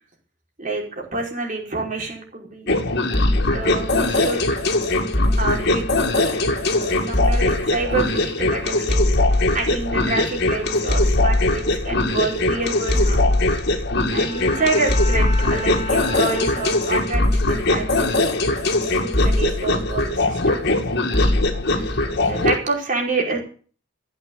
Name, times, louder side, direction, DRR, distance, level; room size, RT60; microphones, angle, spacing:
voice 1, 0.6-2.7 3.5-4.5 5.4-5.8 6.1-13.3 14.1-18.2 18.5-20.6 21.7-23.4, right 3 dB, 40° right, 0 dB, 5.1 m, -28 dB
sound 1, 2.7-22.6, left 2 dB, 55° left, 2.4 m, -20 dB
Bowed string instrument, 14.2-17.4, left 1 dB, 35° left, 3.2 m, -33 dB
15.5 x 8.7 x 8.6 m, 0.41 s
head